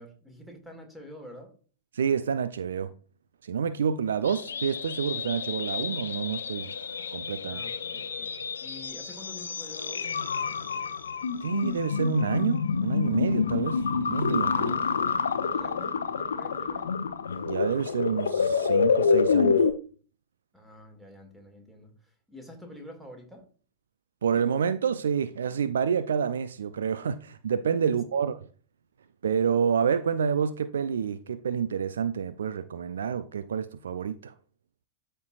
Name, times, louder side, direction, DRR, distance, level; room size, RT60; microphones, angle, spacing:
voice 1, 0.0-1.5 4.2-4.4 7.5-10.1 14.6-15.2 15.5-16.9 20.5-23.5 27.8-28.0, left 1 dB, 5° right, 2.3 m, -47 dB
voice 2, 1.9-2.9 3.4-6.7 7.1-7.6 11.4-13.8 14.1-14.7 17.4-19.6 24.2-28.4 29.2-34.3, right 7 dB, 65° right, 0.4 m, -28 dB
sound 1, 4.3-19.7, left 5 dB, 70° left, 0.7 m, -28 dB
13.5 x 4.5 x 2.5 m
figure-of-eight pair, 90°, 0 cm